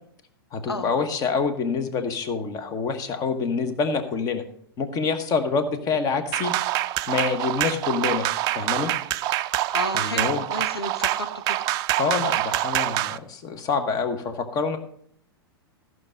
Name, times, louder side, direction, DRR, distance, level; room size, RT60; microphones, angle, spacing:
voice 1, 0.5-4.4 4.8-6.5 7.1-8.9 9.9-10.5 12.0-14.8, left 5 dB, 30° left, 8 dB, 1.2 m, -26 dB
sound 1, 6.3-13.2, right 15 dB, 30° right, 0.4 m, -26 dB
voice 2, 9.7-11.6 12.1-12.2, left 2 dB, 85° left, 7 dB, 0.8 m, -32 dB
14.5 x 6.3 x 5.1 m, 0.65 s
figure-of-eight pair, 95°, 13 cm